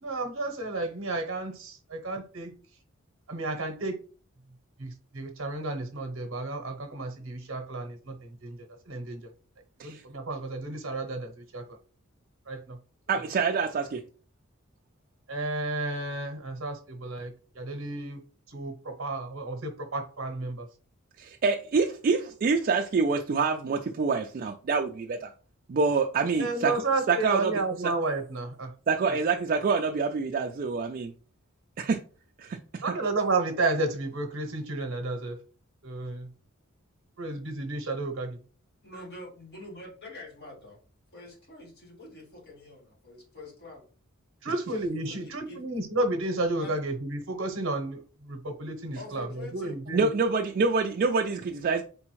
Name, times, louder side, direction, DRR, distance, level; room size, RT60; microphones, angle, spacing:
voice 1, 0.0-2.5 3.3-4.0 4.8-8.6 8.9-9.3 9.8-11.6 12.5-12.8 15.3-18.2 18.5-20.7 26.4-28.7 32.8-35.4 35.8-36.3 37.2-38.4 44.4-50.1, right 2 dB, 65° right, 0.8 m, -32 dB
voice 2, 13.1-14.0 21.2-25.3 25.7-26.7 27.1-27.9 28.9-31.1 31.8-32.0 32.4-32.8 49.9-51.8, right 4 dB, 40° right, 0.3 m, -26 dB
voice 3, 38.8-40.8 41.1-43.8 45.0-45.7 46.6-46.7 49.0-49.8, left 2 dB, 50° left, 1.8 m, -45 dB
4.0 x 3.5 x 3.1 m
head